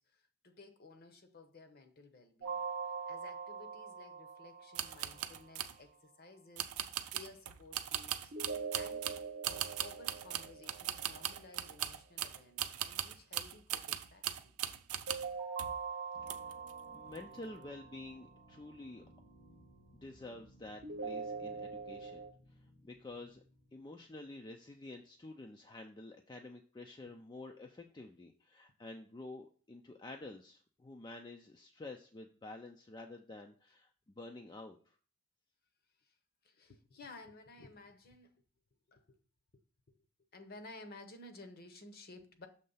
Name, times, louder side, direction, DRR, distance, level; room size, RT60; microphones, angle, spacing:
voice 1, 0.0-8.3 8.7-9.1 9.4-14.5 36.0-36.2 36.4-38.3 38.9-39.2 39.5-39.6 39.9-40.0 40.3-42.5, left 2 dB, 45° left, 7 dB, 0.8 m, -55 dB
sound 1, 2.4-5.4 8.3-11.4 15.1-18.3 20.8-22.3, right 5 dB, 50° right, 0.9 m, -43 dB
sound 2, 4.7-5.8 6.6-15.3 15.6-15.8 16.3-16.7 17.1-17.2, right 11 dB, 85° right, 0.5 m, -39 dB
sound 3, 16.1-24.8, equal, 80° left, 2.0 m, -62 dB
voice 2, 16.9-19.0 19.9-23.4 23.7-35.0, left 2 dB, 20° left, 3 dB, 0.4 m, -50 dB
6.6 x 3.2 x 5.5 m, 0.40 s
head